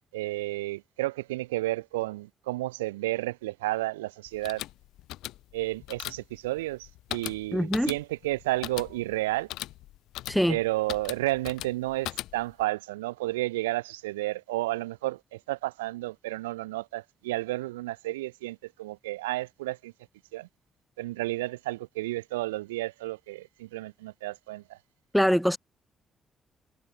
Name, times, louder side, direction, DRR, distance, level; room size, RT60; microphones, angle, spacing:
voice 1, 0.1-4.6 5.5-9.5 10.5-19.9 20.3-20.5 21.0-24.8, right 18 dB, 80° right, 1.7 m, -32 dB
sound 1, 4.3-12.6, left 16 dB, 70° left, 3.1 m, -40 dB
voice 2, 7.5-7.9 10.3-10.6 25.1-25.6, equal, ahead, 1.4 m, -23 dB
hypercardioid pair, 45°, 0 cm